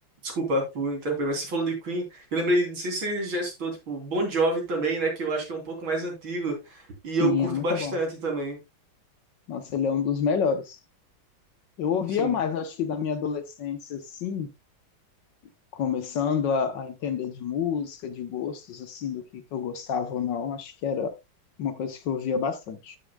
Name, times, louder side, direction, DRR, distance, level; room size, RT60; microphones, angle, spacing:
voice 1, 0.2-8.6 12.2-12.4, right 2 dB, 70° right, 3.9 m, -28 dB
voice 2, 7.2-7.9 9.5-10.8 11.8-14.5 15.7-21.1 21.6-23.0, left 7 dB, 65° left, 1.5 m, -28 dB
14.0 x 6.7 x 2.2 m
omnidirectional pair, 2.3 m